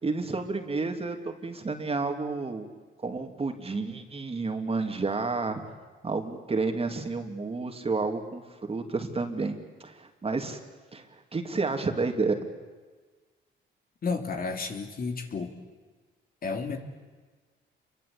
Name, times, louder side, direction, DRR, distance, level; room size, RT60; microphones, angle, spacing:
voice 1, 0.0-2.7 3.0-5.6 6.0-10.6 10.9-11.1 11.3-12.5, right 3 dB, 30° right, 5 dB, 3.1 m, -30 dB
voice 2, 14.0-15.5 16.4-16.8, left 4 dB, 45° left, 5 dB, 3.4 m, -32 dB
28.0 x 23.5 x 8.8 m, 1.4 s
cardioid pair, 90°, 20 cm